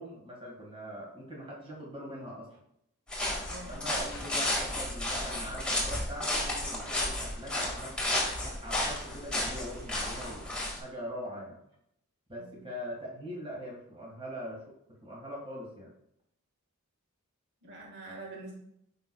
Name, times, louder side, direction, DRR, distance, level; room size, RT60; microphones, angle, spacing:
voice 1, 0.0-2.6 3.6-10.5 10.8-11.6 12.3-15.9, equal, 25° right, -2 dB, 1.8 m, -42 dB
sound 1, 3.1-10.8, left 1 dB, 5° left, 1.9 m, -32 dB
voice 2, 3.4-3.7 12.4-12.6 17.6-18.5, right 2 dB, 55° right, -2 dB, 1.6 m, -45 dB
8.8 x 5.8 x 2.3 m, 0.74 s
head